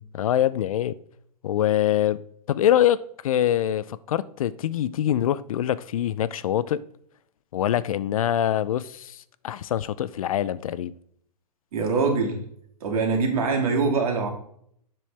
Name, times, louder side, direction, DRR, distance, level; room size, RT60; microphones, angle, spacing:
voice 1, 0.1-1.0 1.4-2.2 2.5-6.8 7.5-10.9, left 11 dB, 60° left, 0.4 m, -24 dB
voice 2, 11.7-12.4 12.8-14.3, right 4 dB, 60° right, 2.4 m, -23 dB
7.5 x 6.2 x 3.4 m
hypercardioid pair, 165°, 21 cm